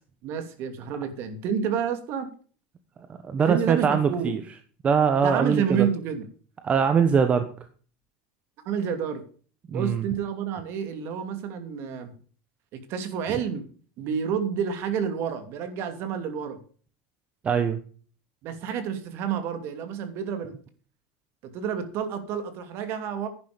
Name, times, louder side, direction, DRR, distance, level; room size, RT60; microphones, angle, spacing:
voice 1, 0.2-2.3 3.4-4.4 5.1-6.3 8.6-9.2 9.7-12.1 12.7-13.6 14.0-16.6 18.4-20.5 21.4-23.3, right 7 dB, 45° right, 9 dB, 2.7 m, -29 dB
voice 2, 3.1-4.4 4.8-5.9 6.6-7.5 9.7-10.0 17.4-17.8, right 6 dB, 25° right, 9 dB, 1.1 m, -22 dB
11.0 x 10.5 x 5.2 m, 0.41 s
supercardioid pair, 145°, 6 cm